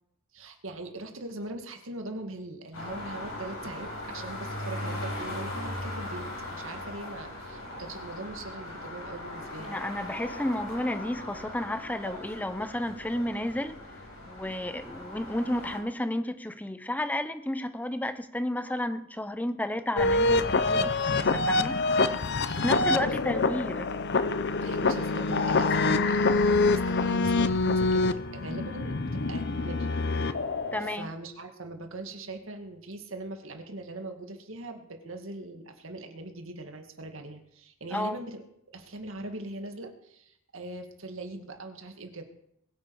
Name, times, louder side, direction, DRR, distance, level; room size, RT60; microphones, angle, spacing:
voice 1, 0.3-9.8 20.8-20.9 22.5-23.4 24.6-29.9 30.8-38.4 38.7-42.2, right 2 dB, 65° right, 2.1 m, -41 dB
sound 1, 2.7-15.8, left 1 dB, 70° left, 5.7 m, -39 dB
voice 2, 9.6-13.8 14.2-21.8 22.5-23.9 30.7-31.1 37.9-38.2, left 1 dB, 5° left, 0.7 m, -32 dB
sound 2, 20.0-30.9, left 3 dB, 55° left, 0.8 m, -26 dB
21.5 x 9.4 x 4.8 m
head